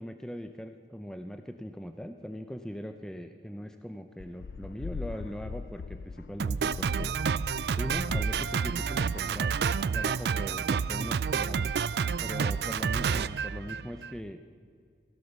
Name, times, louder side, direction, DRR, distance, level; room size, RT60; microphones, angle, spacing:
voice 1, 0.0-7.2 7.7-9.6 9.9-11.7 12.2-14.4, equal, 5° left, 7 dB, 0.5 m, -40 dB
sound 1, 4.2-9.7, left 4 dB, 70° left, 0.4 m, -41 dB
Drum kit, 6.4-14.2, right 6 dB, 70° right, 0.4 m, -29 dB
16.5 x 12.5 x 6.7 m, 2.2 s
head